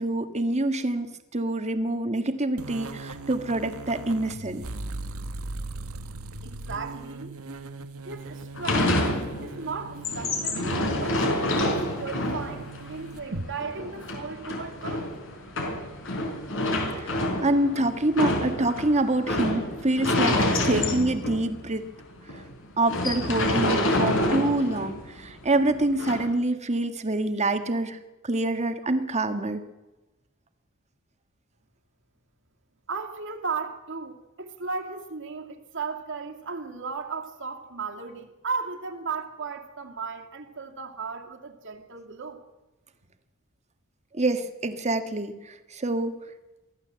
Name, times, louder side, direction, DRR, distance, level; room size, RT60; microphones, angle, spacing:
voice 1, 0.0-4.6 17.0-21.9 22.8-28.0 28.2-29.6 44.1-46.2, right 2 dB, 30° right, 1.6 m, -26 dB
sound 1, 2.6-13.5, right 2 dB, 80° right, 1.5 m, -39 dB
voice 2, 6.4-7.3 8.0-9.0 9.4-15.1 32.9-42.4, right 4 dB, 60° right, 2.5 m, -35 dB
sound 2, 8.6-9.6 9.9-21.6 22.0-22.1 22.3-22.5 22.9-25.1 26.0-26.3, left 1 dB, 65° left, 5.0 m, -27 dB
23.5 x 15.0 x 7.6 m
head